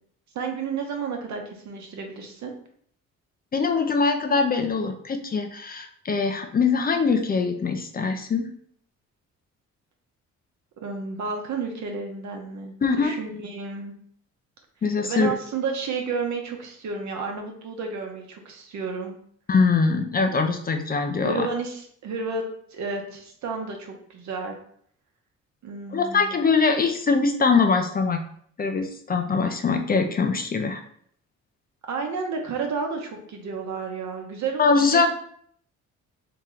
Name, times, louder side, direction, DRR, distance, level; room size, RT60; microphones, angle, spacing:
voice 1, 0.3-2.5 10.8-13.9 15.0-19.1 21.2-22.4 22.7-24.6 25.6-26.3 31.9-35.1, right 4 dB, 70° right, 2 dB, 0.9 m, -31 dB
voice 2, 3.5-8.5 12.8-13.1 14.8-15.3 19.5-21.5 25.9-28.2 28.6-30.8 34.6-35.1, left 4 dB, 30° left, 6 dB, 0.5 m, -22 dB
3.1 x 2.9 x 3.8 m, 0.62 s
cardioid pair, 90°, 30 cm